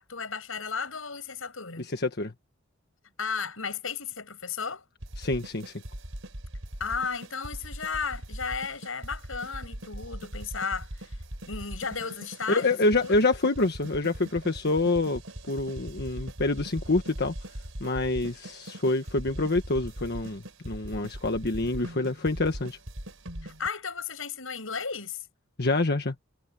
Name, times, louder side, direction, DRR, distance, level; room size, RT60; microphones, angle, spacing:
voice 1, 0.0-1.9 3.2-4.8 6.8-11.2 11.5-13.2 23.4-25.2, left 5 dB, 85° left, 6.3 m, -34 dB
voice 2, 1.8-2.3 5.2-5.7 12.5-15.2 15.5-17.3 17.8-22.8 25.6-26.1, left 2 dB, 55° left, 1.4 m, -26 dB
sound 1, 5.0-23.7, right 1 dB, 85° right, 4.5 m, -41 dB
head